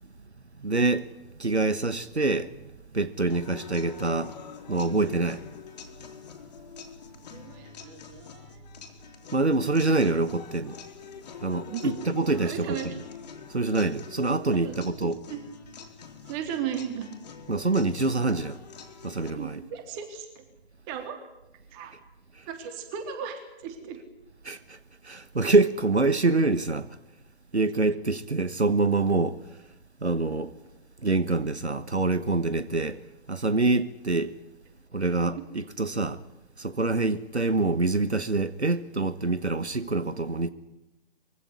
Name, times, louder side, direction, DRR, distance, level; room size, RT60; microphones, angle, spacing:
voice 1, 0.6-1.1 1.4-2.6 2.9-4.3 4.7-5.4 9.3-10.8 11.4-12.9 13.5-15.2 17.5-18.6 19.0-19.6 24.4-24.8 25.0-26.9 27.5-29.4 30.0-30.5 31.0-33.0 33.3-34.3 34.9-36.2 36.6-40.5, right 3 dB, 85° right, 1.3 m, -25 dB
sound 1, 3.3-19.3, left 7 dB, 40° left, 3.4 m, -46 dB
voice 2, 7.3-8.8 11.6-12.0 12.4-12.9 14.5-15.4 16.3-17.1 19.3-20.4 20.9-21.2 21.7-21.9 22.5-24.0 35.0-35.4, right 8 dB, 20° right, 3.4 m, -36 dB
23.5 x 16.0 x 9.9 m
figure-of-eight pair, 135°, 33 cm